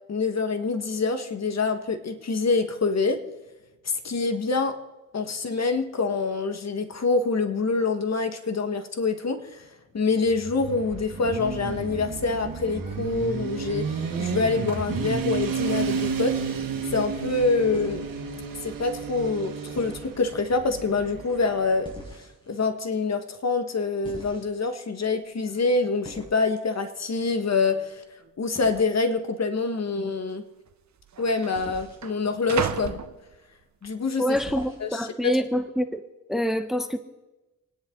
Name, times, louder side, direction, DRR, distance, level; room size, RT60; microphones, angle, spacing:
voice 1, 0.1-3.2 3.8-4.8 5.1-9.6 9.9-16.4 16.9-18.1 18.6-21.9 22.5-28.0 28.4-30.4 31.2-33.0 33.8-34.4 34.8-35.0, left 4 dB, 50° left, 8 dB, 1.5 m, -26 dB
Motorcycle, 10.2-21.9, right 5 dB, 75° right, 1.9 m, -32 dB
sound 1, 15.9-16.5 17.7-18.1 19.8-20.2 21.8-22.5 24.0-24.7 26.0-26.4 28.5-28.8 31.5-32.0 34.3-34.9, equal, 15° left, 5.1 m, -43 dB
sound 2, 25.1-25.2 25.4-25.8 26.6-26.7 27.4-27.9 28.2-28.3 29.2-29.3 30.3-30.4 30.7-33.9 34.4-34.8, right 8 dB, 55° right, 0.9 m, -36 dB
voice 2, 34.2-36.0 36.3-37.0, equal, ahead, 8 dB, 0.9 m, -26 dB
26.0 x 10.0 x 3.8 m, 1.1 s
cardioid pair, 80°, 34 cm